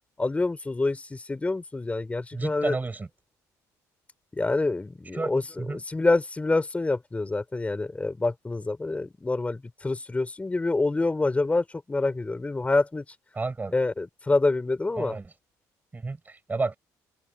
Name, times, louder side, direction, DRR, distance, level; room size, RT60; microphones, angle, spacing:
voice 1, 0.2-2.8 4.3-13.0 13.7-15.2, left 3 dB, 15° left, 3.9 m, -27 dB
voice 2, 2.3-3.1 5.1-5.3 5.6-5.8 13.3-13.7 15.0-15.3 15.9-16.7, right 3 dB, 20° right, 6.5 m, -31 dB
open air
cardioid pair, 90°, 8 cm